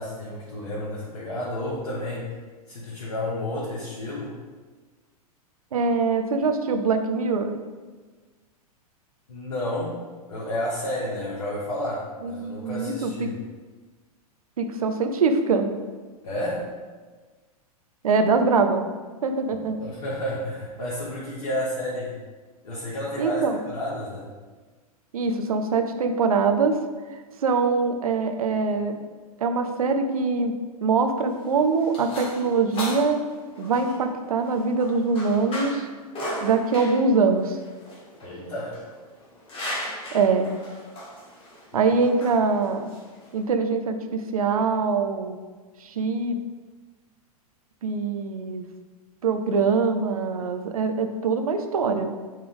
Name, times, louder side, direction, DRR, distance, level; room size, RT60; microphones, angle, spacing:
voice 1, 0.0-2.3 2.7-4.3 9.3-10.0 10.3-13.4 16.2-16.6 19.5-22.2 22.6-24.3 38.2-38.7 41.7-41.8, left 1 dB, 65° left, -7 dB, 1.7 m, -31 dB
voice 2, 5.7-7.6 12.2-13.3 14.6-15.7 18.0-18.9 19.2-19.8 23.2-23.6 25.1-26.8 27.4-29.0 29.4-30.5 30.8-33.2 33.6-35.9 36.4-37.6 40.1-40.5 41.7-42.9 43.3-45.4 45.8-46.4 47.8-48.7 49.2-52.1, right 4 dB, 65° right, 6 dB, 0.7 m, -23 dB
sound 1, 31.2-43.5, equal, 25° left, 1.6 m, -37 dB
8.8 x 3.4 x 3.6 m, 1.4 s
figure-of-eight pair, 100°, 20 cm